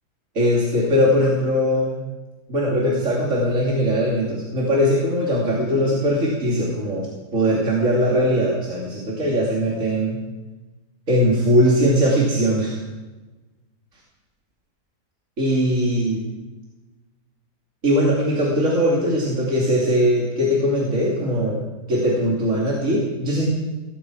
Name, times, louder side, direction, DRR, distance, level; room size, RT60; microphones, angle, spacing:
voice 1, 0.3-2.0 2.5-10.2 11.1-12.8 15.4-16.2 17.8-21.6 21.9-23.5, equal, 45° right, -4 dB, 3.1 m, -20 dB
18.0 x 15.0 x 4.8 m, 1.2 s
omnidirectional pair, 1.8 m